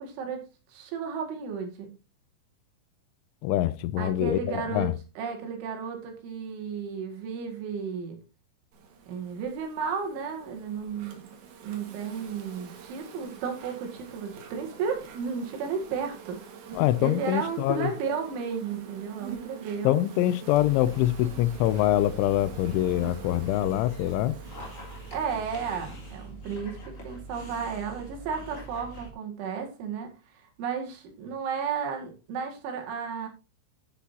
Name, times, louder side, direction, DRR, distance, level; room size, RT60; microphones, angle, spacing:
voice 1, 0.0-1.9 4.0-8.2 9.1-11.3 11.6-16.4 17.0-20.0 25.1-33.3, right 6 dB, 85° right, 4.6 m, -33 dB
voice 2, 3.4-4.9 16.7-17.9 19.8-24.4, left 14 dB, 85° left, 3.1 m, -25 dB
Insect, 8.7-26.1, right 6 dB, 70° right, 3.9 m, -46 dB
Dog, 20.5-29.1, right 2 dB, 20° left, 2.6 m, -44 dB
10.5 x 9.9 x 2.8 m
omnidirectional pair, 5.3 m